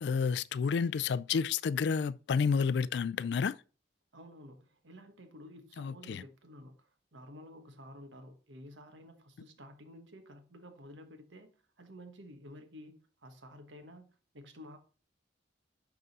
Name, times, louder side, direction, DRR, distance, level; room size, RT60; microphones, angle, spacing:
voice 1, 0.0-3.5 5.8-6.2, left 6 dB, 60° left, 0.3 m, -30 dB
voice 2, 4.1-14.1 14.3-14.8, equal, 80° right, 1.2 m, -52 dB
11.0 x 3.7 x 4.1 m
head